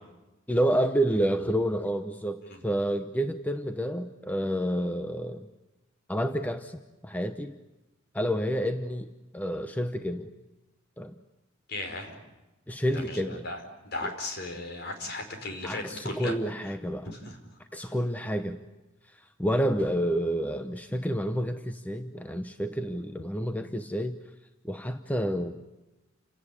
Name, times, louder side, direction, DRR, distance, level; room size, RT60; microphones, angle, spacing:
voice 1, 0.5-5.5 6.1-7.6 8.1-9.1 9.3-10.3 11.0-11.1 12.7-13.4 14.0-14.1 15.6-17.1 17.7-18.6 19.4-24.2 24.6-25.6, equal, 10° left, 8 dB, 0.8 m, -29 dB
voice 2, 11.7-12.1 12.9-16.3 16.6-16.7 17.0-17.4 17.8-18.0, left 2 dB, 55° left, 4 dB, 5.0 m, -36 dB
29.0 x 18.0 x 9.9 m, 1.1 s
head